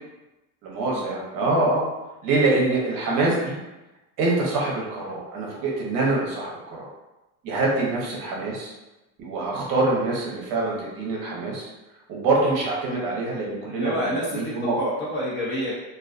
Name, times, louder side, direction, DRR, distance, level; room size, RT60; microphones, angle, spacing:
voice 1, 0.6-1.8 2.2-3.6 4.2-6.9 7.4-8.7 9.2-11.7 12.1-14.8, right 2 dB, 45° right, -3 dB, 0.8 m, -25 dB
voice 2, 13.7-15.7, equal, 30° left, -6 dB, 0.3 m, -28 dB
2.4 x 2.3 x 2.4 m, 1.0 s
supercardioid pair, 140°, 44 cm